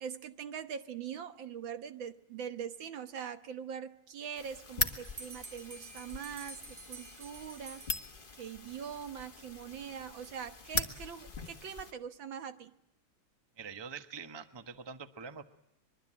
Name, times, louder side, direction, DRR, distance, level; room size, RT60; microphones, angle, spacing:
voice 1, 0.0-8.1 8.4-12.7, right 8 dB, 65° right, 10 dB, 1.8 m, -42 dB
sound 1, 4.4-11.9, left 4 dB, 25° left, 1.6 m, -40 dB
Bell, 4.9-8.5, right 3 dB, 35° right, 1.5 m, -50 dB
voice 2, 13.6-15.4, right 6 dB, 20° right, 9 dB, 0.8 m, -45 dB
23.5 x 23.0 x 8.8 m, 0.81 s
omnidirectional pair, 2.4 m